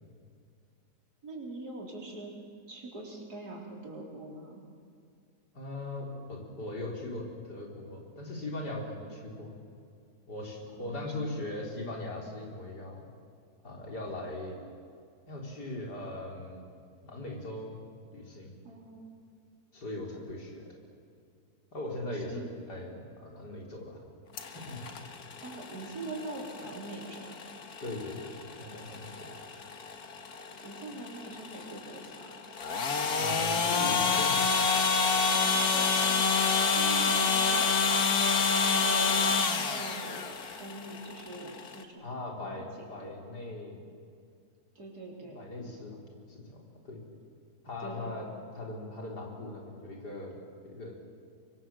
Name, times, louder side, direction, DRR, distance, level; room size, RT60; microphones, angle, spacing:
voice 1, 1.2-2.3 2.7-4.6 10.7-11.3 18.6-19.1 22.1-22.5 25.4-27.4 30.6-32.4 35.2-36.3 36.6-37.7 38.7-40.3 40.6-42.1 42.4-43.1 44.7-45.4 47.8-48.2, right 2 dB, 70° right, -1 dB, 4.6 m, -43 dB
voice 2, 5.5-9.5 10.3-13.1 13.6-14.6 15.3-16.6 17.0-17.8 18.1-18.6 19.7-20.7 21.7-22.4 22.7-24.0 24.5-24.8 27.8-28.3 28.6-29.3 33.2-34.4 42.0-43.8 45.3-46.0 46.3-46.6 46.8-47.0 47.6-48.3 48.5-50.4 50.6-50.9, left 2 dB, 90° left, -1 dB, 4.8 m, -39 dB
sound 1, 24.4-41.8, left 5 dB, 70° left, 2.0 m, -29 dB
24.0 x 24.0 x 7.6 m, 2.3 s
omnidirectional pair, 1.7 m